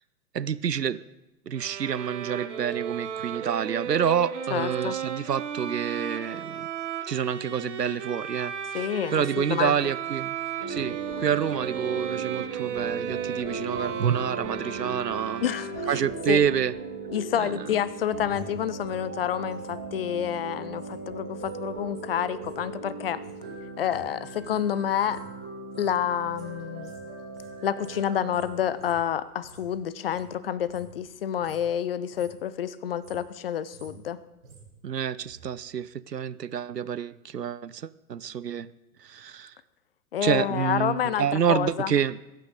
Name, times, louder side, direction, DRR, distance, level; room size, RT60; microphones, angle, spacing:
voice 1, 0.3-1.0 1.5-6.7 7.1-8.5 9.1-10.4 10.7-15.4 15.9-16.7 17.4-17.5 34.8-38.7 39.0-39.5 40.2-42.2, right 8 dB, 90° right, 17 dB, 0.6 m, -28 dB
Bowed string instrument, 1.5-16.1, right 8 dB, 50° right, 1.4 m, -35 dB
voice 2, 4.5-5.0 8.7-9.8 15.4-16.0 16.3-16.4 17.1-23.2 23.8-25.2 25.8-27.0 27.6-34.2 40.1-41.9, left 10 dB, 40° left, 17 dB, 0.6 m, -29 dB
sound 1, 10.6-28.8, right 3 dB, 5° right, 0.4 m, -38 dB
sound 2, 17.6-21.0 21.2-29.7 30.0-31.1 31.3-31.7 32.0-32.5 32.8-35.5 35.8-35.9, right 3 dB, 70° right, 4.4 m, -52 dB
21.5 x 9.2 x 3.8 m, 0.98 s
figure-of-eight pair, 120°, 47 cm